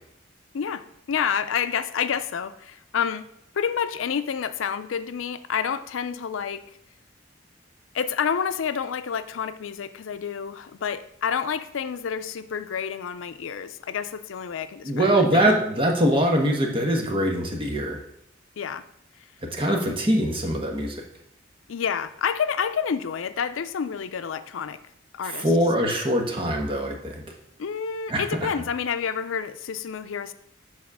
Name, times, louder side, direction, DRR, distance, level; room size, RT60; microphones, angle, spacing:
voice 1, 0.5-3.2 3.5-6.7 7.9-15.5 18.6-18.8 19.7-20.0 21.7-24.8 25.1-25.5 27.6-30.3, left 7 dB, 90° left, 12 dB, 0.5 m, -29 dB
voice 2, 14.8-18.0 19.5-21.0 25.2-27.2 28.1-28.2, right 1 dB, 25° right, 1 dB, 1.2 m, -23 dB
7.3 x 4.2 x 6.0 m, 0.74 s
head